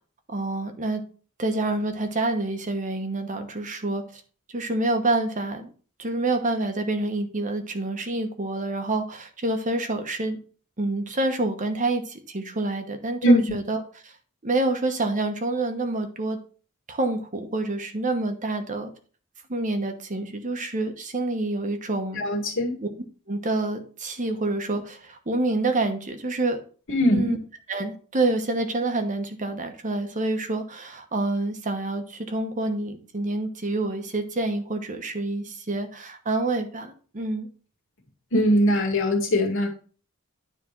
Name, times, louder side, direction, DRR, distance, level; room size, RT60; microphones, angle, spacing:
voice 1, 0.3-1.0 1.4-4.0 4.5-5.7 6.0-10.4 10.8-14.1 14.4-16.4 16.9-18.9 19.5-22.2 22.8-22.9 23.3-26.6 27.1-27.4 27.7-37.5, right 2 dB, 35° right, 6 dB, 1.0 m, -27 dB
voice 2, 22.2-22.7 26.9-27.3 38.3-39.7, equal, 60° left, 0 dB, 2.0 m, -20 dB
9.9 x 3.4 x 5.9 m, 0.40 s
head